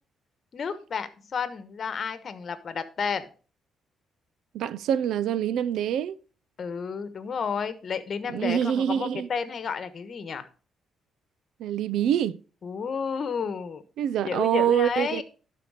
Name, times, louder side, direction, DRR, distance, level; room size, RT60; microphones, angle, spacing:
voice 1, 0.5-3.3 6.6-10.5 12.6-13.8 14.2-15.2, left 6 dB, 50° left, 1.2 m, -31 dB
voice 2, 4.5-6.2 8.3-9.3 11.6-12.4 14.0-15.2, right 10 dB, 80° right, 0.4 m, -25 dB
12.0 x 4.4 x 4.9 m
cardioid pair, 90°, 0 cm